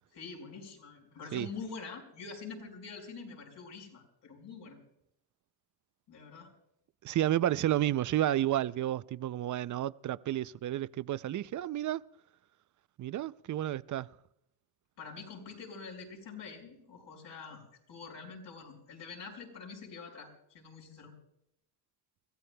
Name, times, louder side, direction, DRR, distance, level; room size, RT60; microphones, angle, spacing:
voice 1, 0.1-4.8 6.1-6.5 15.0-17.6 17.9-21.1, left 5 dB, 75° left, 4.9 m, -46 dB
voice 2, 7.0-12.0 13.0-14.1, right 12 dB, 45° right, 0.4 m, -31 dB
29.0 x 15.0 x 2.2 m
cardioid pair, 115°, 43 cm